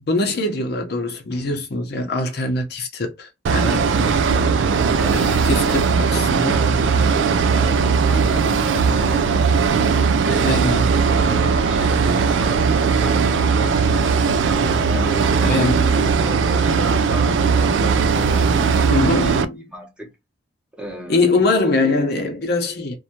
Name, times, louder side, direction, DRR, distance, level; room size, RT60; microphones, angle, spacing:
voice 1, 0.1-3.8 5.1-6.6 10.4-10.9 15.4-15.9 18.9-19.7 21.1-22.9, left 2 dB, 60° left, 0.7 m, -22 dB
sound 1, 3.5-19.5, right 5 dB, 85° right, 0.3 m, -18 dB
voice 2, 3.6-4.7 5.0-9.5 10.2-10.5 11.0-14.4 14.8-15.8 16.2-19.3 19.7-20.1 20.8-21.3, equal, 5° right, 0.8 m, -35 dB
2.7 x 2.2 x 2.8 m
head